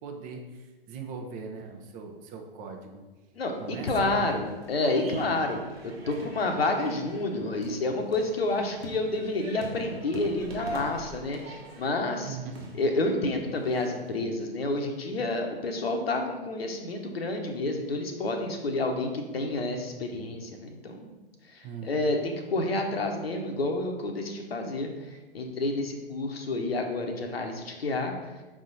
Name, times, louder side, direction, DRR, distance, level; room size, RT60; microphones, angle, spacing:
voice 1, 0.0-3.0 3.6-4.4 12.2-12.7 21.6-21.9, right 5 dB, 25° right, 3 dB, 0.7 m, -40 dB
voice 2, 3.3-12.4 12.8-21.1 21.5-24.9 25.3-28.1, left 2 dB, 80° left, 3 dB, 1.1 m, -29 dB
sound 1, 3.5-14.2, right 1 dB, 80° right, 1.4 m, -44 dB
6.2 x 3.7 x 4.1 m, 1.2 s
hypercardioid pair, 115°, 30 cm